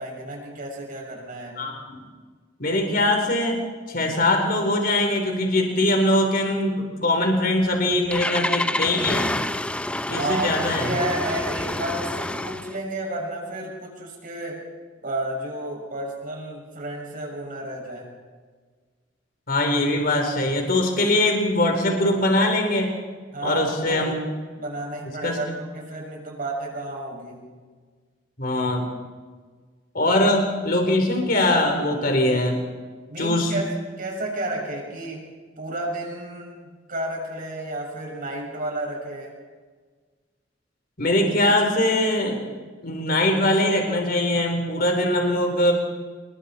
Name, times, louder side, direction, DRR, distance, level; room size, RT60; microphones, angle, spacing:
voice 1, 0.0-1.6 10.0-14.6 15.0-18.1 23.3-24.1 24.6-27.5 33.1-36.6 36.9-39.3, right 1 dB, 50° right, -1 dB, 6.8 m, -31 dB
voice 2, 1.6-2.0 2.6-3.6 3.9-9.3 10.1-10.9 19.5-22.9 23.4-24.2 25.2-25.4 28.4-28.9 29.9-32.6 33.2-33.5 41.0-42.4 42.8-45.7, left 1 dB, 50° left, 3 dB, 3.8 m, -22 dB
Engine starting, 7.6-12.8, left 1 dB, 5° left, 0.6 m, -28 dB
28.0 x 21.5 x 4.3 m, 1.5 s
head